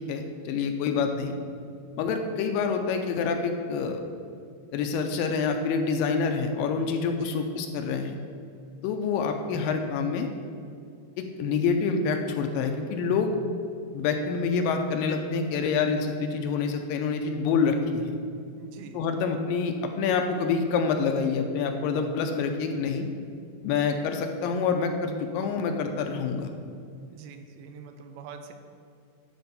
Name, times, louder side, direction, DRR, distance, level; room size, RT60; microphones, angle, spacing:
voice 1, 0.0-1.4 2.0-4.0 4.7-8.2 8.8-10.3 11.2-13.3 13.9-18.2 18.9-23.1 23.6-26.5, left 5 dB, 80° left, 5 dB, 2.2 m, -27 dB
voice 2, 7.1-7.5 18.6-19.1 27.1-28.5, right 6 dB, 85° right, 7 dB, 2.4 m, -45 dB
10.5 x 4.5 x 6.7 m, 2.4 s
omnidirectional pair, 4.3 m